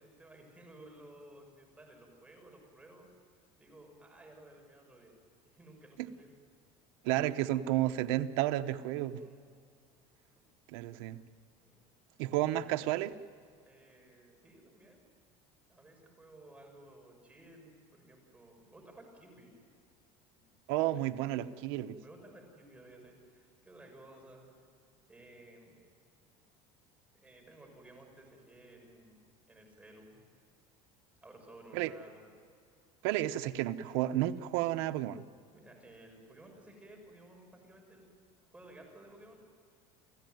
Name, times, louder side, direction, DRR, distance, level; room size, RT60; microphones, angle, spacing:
voice 1, 0.0-3.1 3.6-5.1 5.4-6.3 8.9-9.4 11.6-11.8 13.6-15.1 15.7-19.5 20.3-20.5 21.3-24.5 25.1-25.8 27.1-29.2 29.5-30.2 31.2-32.3 35.5-38.0 38.5-39.4, right 1 dB, 10° right, 1 dB, 6.6 m, -56 dB
voice 2, 7.0-9.2 10.7-11.2 12.2-13.1 20.7-22.0 31.7-31.9 33.0-35.2, right 14 dB, 85° right, 8 dB, 0.9 m, -31 dB
29.5 x 16.0 x 9.3 m, 2.3 s
cardioid pair, 145°, 14 cm